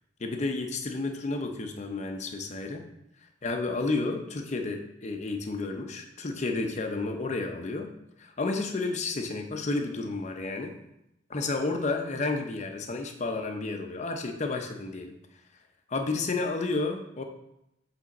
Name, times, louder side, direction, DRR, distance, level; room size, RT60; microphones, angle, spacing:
voice 1, 0.2-2.9 3.4-7.9 8.2-10.7 11.3-15.1 15.9-17.2, left 3 dB, 40° left, 4 dB, 0.6 m, -31 dB
7.3 x 3.4 x 4.1 m, 0.84 s
head